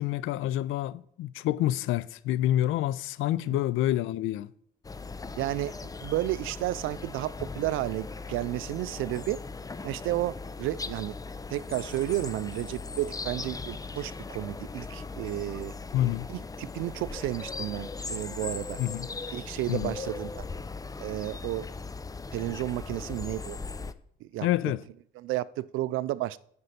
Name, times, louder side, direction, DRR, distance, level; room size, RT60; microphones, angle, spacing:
voice 1, 0.0-4.5 15.9-16.3 18.8-19.1 19.7-20.0 24.4-24.8, left 13 dB, 90° left, 0.5 m, -28 dB
sound 1, 4.8-23.9, left 4 dB, 20° left, 0.5 m, -39 dB
voice 2, 5.4-9.4 9.8-11.1 11.5-15.7 16.3-18.8 19.3-20.3 21.0-21.7 22.3-23.6 24.2-24.5 25.2-26.4, right 16 dB, 90° right, 0.4 m, -32 dB
9.6 x 5.2 x 5.8 m
cardioid pair, 90°, 20 cm